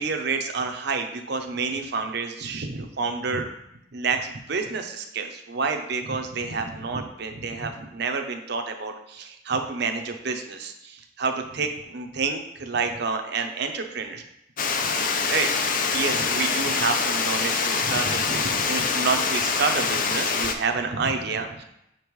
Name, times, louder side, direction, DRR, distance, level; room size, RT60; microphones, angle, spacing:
voice 1, 0.0-3.5 3.9-14.2 15.3-15.5 15.9-21.6, right 4 dB, 60° right, 5 dB, 0.6 m, -29 dB
Water, 14.6-20.5, left 5 dB, 50° left, 0.6 m, -25 dB
6.4 x 5.2 x 3.1 m, 0.81 s
head